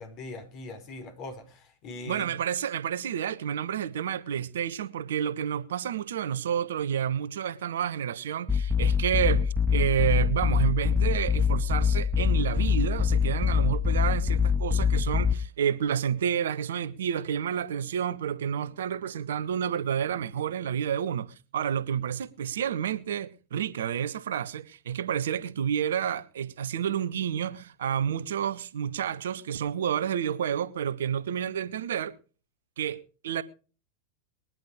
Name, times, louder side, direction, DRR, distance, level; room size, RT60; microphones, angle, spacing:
voice 1, 0.0-2.3, left 2 dB, 40° left, 5.0 m, -41 dB
voice 2, 2.1-32.1 32.8-33.4, right 8 dB, 60° right, 1.2 m, -30 dB
sound 1, 8.5-15.3, left 6 dB, ahead, 1.5 m, -24 dB
21.5 x 11.0 x 4.9 m
figure-of-eight pair, 90°, 0 cm